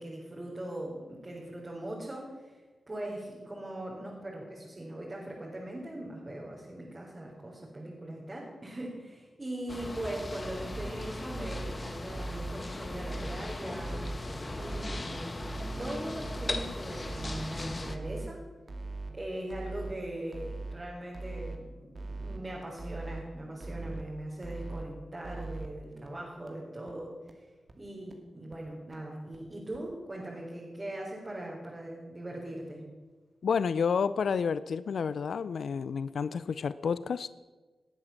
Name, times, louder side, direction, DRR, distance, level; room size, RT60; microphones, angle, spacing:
voice 1, 0.0-2.6 2.9-18.4 19.1-27.5 27.8-32.8, right 1 dB, 35° right, -4 dB, 4.2 m, -40 dB
sound 1, 9.7-18.0, left 2 dB, 35° left, 1.5 m, -38 dB
sound 2, 10.5-10.9 11.3-11.7 12.1-12.5 12.9-13.4 13.8-14.2 14.6-15.0 15.4-15.8 16.2-16.7 17.0-17.5 17.9-18.3 18.7-19.1 19.5-19.9 20.3-20.8 21.1-21.6 21.9-22.4 22.8-23.2 23.6-24.0 24.4-24.9 25.2-25.7 26.1-26.2 26.5-26.6 26.9-27.0 27.3-27.4 27.7-27.8 28.1-28.2 28.5-28.6 28.9-29.0 29.3-29.4 29.7-29.8, right 3 dB, 50° right, 2.4 m, -39 dB
voice 2, 33.4-37.3, left 6 dB, 80° left, 16 dB, 0.4 m, -30 dB
19.0 x 8.8 x 7.2 m, 1.3 s
cardioid pair, 45°, 0 cm